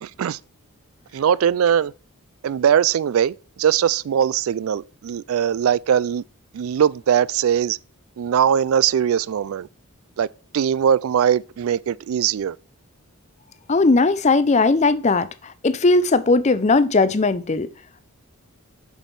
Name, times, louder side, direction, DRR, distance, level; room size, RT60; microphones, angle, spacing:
voice 1, 0.0-0.4 1.1-1.9 2.4-6.2 6.5-7.8 8.2-9.7 10.2-10.3 10.5-12.6, right 8 dB, 75° right, 0.3 m, -20 dB
voice 2, 13.7-17.7, left 3 dB, 30° left, 0.5 m, -18 dB
7.3 x 6.2 x 5.3 m
head